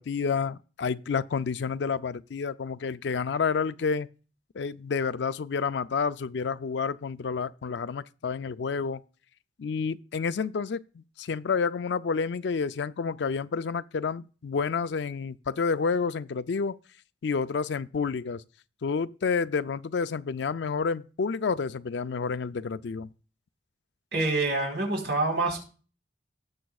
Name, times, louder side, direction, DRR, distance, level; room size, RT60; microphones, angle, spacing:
voice 1, 0.0-4.1 4.5-9.0 9.6-16.8 17.2-18.4 18.8-23.1, left 5 dB, 65° left, 0.4 m, -29 dB
voice 2, 24.1-25.6, right 2 dB, 65° right, 4.0 m, -26 dB
18.5 x 6.9 x 2.4 m
head